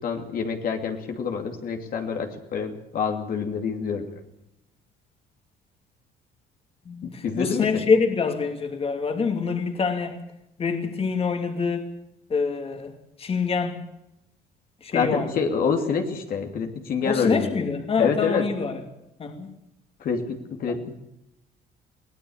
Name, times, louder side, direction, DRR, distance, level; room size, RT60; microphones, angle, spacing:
voice 1, 0.0-4.1 7.2-7.9 14.9-17.5 18.0-18.4 20.0-21.0, left 6 dB, 60° left, 2.7 m, -27 dB
voice 2, 6.9-10.2 10.6-11.9 12.3-12.9 13.2-13.8 14.8-15.3 17.0-18.8 19.2-19.5 20.7-20.8, left 5 dB, 35° left, 2.7 m, -26 dB
23.5 x 17.5 x 7.2 m
cardioid pair, 110°, 17 cm